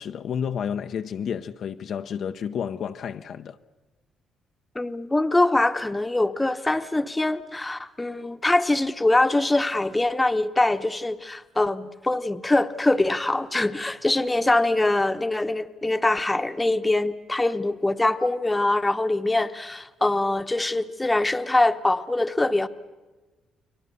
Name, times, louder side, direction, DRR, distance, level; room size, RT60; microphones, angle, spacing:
voice 1, 0.0-3.6, left 8 dB, 65° left, 0.7 m, -31 dB
voice 2, 4.7-22.7, left 2 dB, 15° left, 0.9 m, -23 dB
29.5 x 22.5 x 6.8 m
cardioid pair, 90°, 0 cm